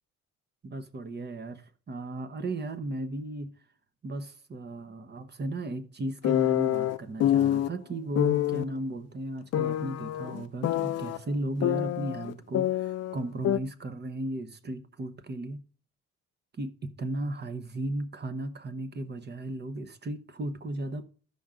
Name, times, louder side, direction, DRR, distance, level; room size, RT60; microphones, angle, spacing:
voice 1, 0.6-3.5 4.0-15.6 16.6-21.1, right 1 dB, 35° right, 1.0 m, -35 dB
sound 1, 6.2-7.7 8.2-8.7 9.5-11.2 11.6-13.2 13.4-13.6, left 12 dB, 55° left, 0.5 m, -26 dB
13.0 x 5.4 x 3.7 m
cardioid pair, 90°, 30 cm